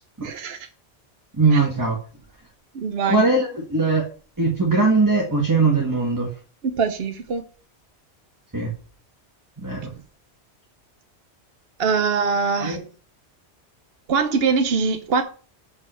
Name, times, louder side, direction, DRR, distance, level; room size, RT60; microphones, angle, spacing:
voice 1, 0.2-0.7 1.5-1.6 2.7-3.3 6.6-7.4 11.8-12.8 14.1-15.2, right 5 dB, 65° right, 1.1 m, -23 dB
voice 2, 1.4-2.0 3.1-4.0 4.4-6.3 8.5-8.7 9.6-9.9 12.6-12.8, right 3 dB, 15° right, 1.5 m, -20 dB
6.3 x 5.4 x 6.3 m
omnidirectional pair, 1.1 m